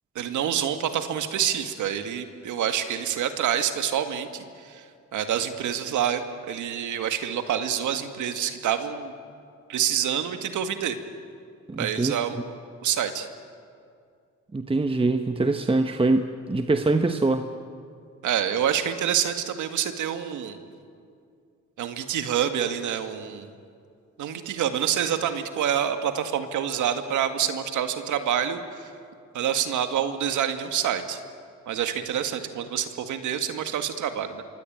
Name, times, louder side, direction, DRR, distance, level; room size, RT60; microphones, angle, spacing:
voice 1, 0.2-6.2 6.5-9.1 9.7-11.0 11.8-12.4 12.8-13.3 18.2-20.6 21.8-23.5 24.2-28.9 29.3-31.2 31.7-34.4, right 9 dB, 75° right, 8 dB, 2.1 m, -27 dB
voice 2, 11.7-12.1 14.5-17.5, right 2 dB, 20° right, 7 dB, 1.2 m, -23 dB
26.0 x 24.0 x 9.0 m, 2.3 s
cardioid pair, 90°, 30 cm